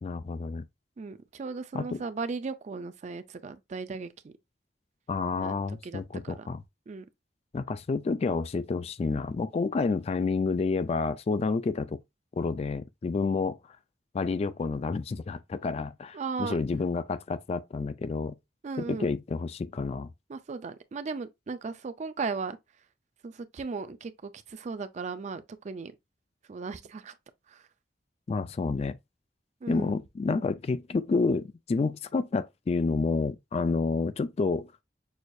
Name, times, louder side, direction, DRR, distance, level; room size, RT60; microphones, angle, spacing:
voice 1, 0.0-0.6 1.7-2.0 5.1-6.6 7.5-12.0 12.4-13.6 14.1-18.3 18.9-20.1 28.3-29.0 29.7-34.7, left 4 dB, 35° left, 0.3 m, -29 dB
voice 2, 1.0-4.3 5.4-6.5 6.9-7.1 16.1-16.6 18.6-19.1 20.3-22.6 23.2-25.9 26.5-27.1 27.5-27.6 29.6-29.9, right 4 dB, 40° right, 0.4 m, -37 dB
6.2 x 2.3 x 2.6 m
head